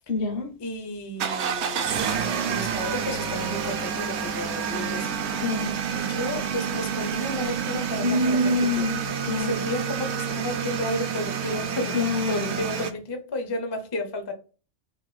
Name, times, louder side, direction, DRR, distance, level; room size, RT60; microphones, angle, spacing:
voice 1, 0.1-0.5 5.4-5.8 8.0-9.7 11.9-12.7, left 2 dB, 55° left, 0.9 m, -26 dB
voice 2, 0.6-5.2 5.9-8.4 8.8-8.9 9.4-12.0 12.3-14.3, left 1 dB, 35° left, 0.4 m, -32 dB
sound 1, 1.2-12.9, right 7 dB, 70° right, 0.8 m, -29 dB
3.7 x 2.1 x 3.1 m
omnidirectional pair, 1.2 m